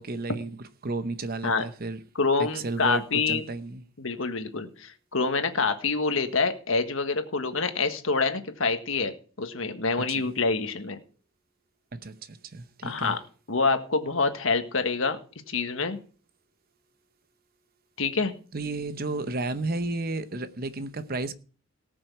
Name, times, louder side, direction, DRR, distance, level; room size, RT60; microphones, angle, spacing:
voice 1, 0.0-2.0 2.5-3.8 10.1-10.4 11.9-13.2 18.5-21.3, right 2 dB, 45° right, 0.8 m, -33 dB
voice 2, 2.2-3.4 4.0-11.0 12.8-13.2 13.5-15.2 15.5-16.0 18.0-18.3, left 4 dB, 70° left, 1.5 m, -26 dB
18.5 x 6.2 x 4.7 m
head